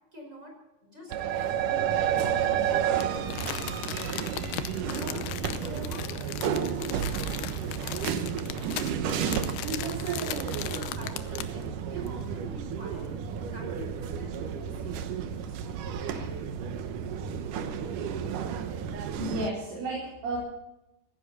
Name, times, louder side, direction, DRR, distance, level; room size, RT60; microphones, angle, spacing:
voice 1, 0.1-1.9 2.1-3.7 4.7-7.5 7.8-13.2 13.5-16.4, left 1 dB, 15° right, 0 dB, 5.4 m, -47 dB
sound 1, 1.1-19.5, right 8 dB, 80° right, 1.8 m, -31 dB
Crumpling crinkling, 3.0-11.6 12.1-12.2, left 13 dB, 75° left, 2.5 m, -38 dB
voice 2, 19.2-20.4, right 1 dB, 50° right, -5 dB, 5.9 m, -32 dB
18.0 x 15.5 x 4.2 m, 0.92 s
omnidirectional pair, 5.3 m